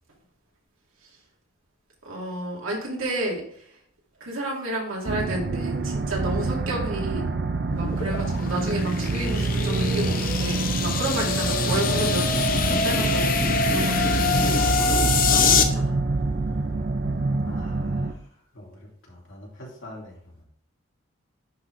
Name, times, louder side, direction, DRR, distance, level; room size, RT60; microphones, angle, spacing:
voice 1, 2.0-3.4 4.2-7.2 7.7-12.2 12.7-16.0, right 1 dB, 85° right, -2 dB, 2.6 m, -31 dB
sound 1, 5.1-18.1, right 3 dB, 50° right, 0.6 m, -26 dB
sound 2, 7.6-15.6, left 5 dB, 45° left, 0.7 m, -25 dB
voice 2, 17.4-20.4, left 1 dB, 70° left, -2 dB, 2.3 m, -44 dB
10.0 x 4.0 x 3.3 m, 0.62 s
head